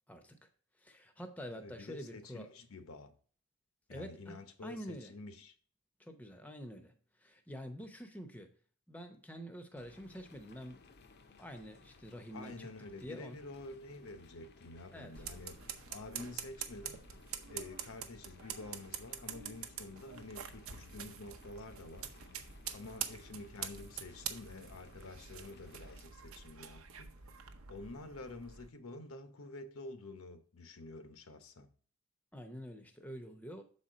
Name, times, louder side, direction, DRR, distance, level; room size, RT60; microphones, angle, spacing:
voice 1, 0.1-0.5 0.8-2.5 3.9-5.1 6.0-8.5 8.9-10.8 11.4-12.7 13.0-13.4 14.9-15.2 22.8-23.0 32.3-33.6, equal, 5° left, 0.6 m, -47 dB
voice 2, 1.5-3.1 3.9-5.5 12.3-15.6 15.9-17.0 17.5-22.1 22.7-27.1 27.7-31.7, left 2 dB, 85° left, 0.9 m, -49 dB
sound 1, 9.8-26.0, left 4 dB, 50° left, 0.6 m, -60 dB
sound 2, 15.1-28.7, right 8 dB, 85° right, 0.8 m, -46 dB
7.0 x 4.2 x 5.0 m
head